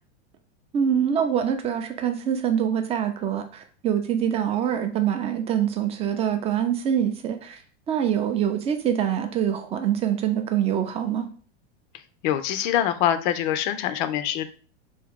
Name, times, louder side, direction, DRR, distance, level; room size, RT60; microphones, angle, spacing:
voice 1, 0.7-7.6 7.9-11.3, right 9 dB, 20° right, 7 dB, 0.4 m, -25 dB
voice 2, 12.2-14.5, left 11 dB, 50° left, 11 dB, 0.5 m, -24 dB
3.6 x 2.6 x 3.5 m, 0.41 s
supercardioid pair, 130°, 31 cm